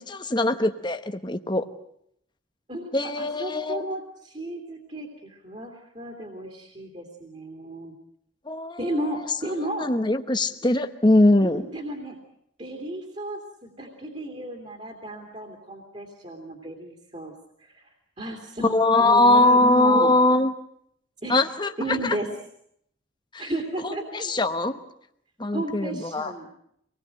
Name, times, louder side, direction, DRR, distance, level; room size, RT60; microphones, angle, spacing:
voice 1, 0.0-1.7 2.9-3.8 8.5-8.8 9.8-11.6 18.6-20.5 21.3-22.2 23.3-23.5 23.8-24.8 25.4-26.3, left 2 dB, 25° left, 8 dB, 1.1 m, -21 dB
voice 2, 2.7-7.9 8.8-9.9 11.4-12.2 12.6-17.3 17.6-17.9 18.2-18.7 19.0-20.1 21.2-21.4 21.8-22.3 23.4-24.3 25.5-26.5, right 1 dB, 30° right, 1 dB, 2.8 m, -33 dB
25.5 x 20.0 x 7.8 m, 0.71 s
head